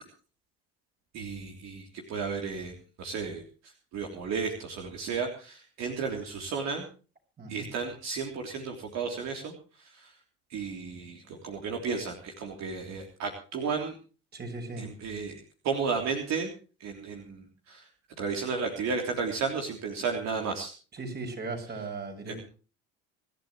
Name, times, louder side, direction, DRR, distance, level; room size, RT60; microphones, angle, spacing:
voice 1, 1.1-6.9 7.5-10.1 10.5-14.0 14.8-16.5 16.8-17.9 18.2-20.7 22.3-22.4, right 5 dB, 60° right, 2 dB, 3.5 m, -33 dB
voice 2, 7.4-7.7 14.3-14.9 20.9-22.4, right 3 dB, 30° right, 4 dB, 6.6 m, -37 dB
25.5 x 12.0 x 3.2 m, 0.36 s
supercardioid pair, 85°, 31 cm